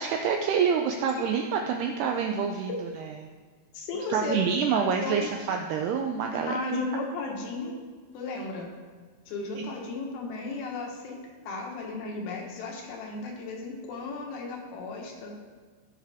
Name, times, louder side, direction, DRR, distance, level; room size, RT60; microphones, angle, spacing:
voice 1, 0.0-2.7 4.1-6.5 9.6-9.7, right 6 dB, 85° right, 3 dB, 2.3 m, -27 dB
voice 2, 3.7-4.4 4.7-5.3 6.5-7.8 8.1-8.7 9.3-11.2 11.5-15.3, left 3 dB, 65° left, 0 dB, 2.8 m, -34 dB
17.5 x 5.9 x 3.5 m, 1.4 s
omnidirectional pair, 5.3 m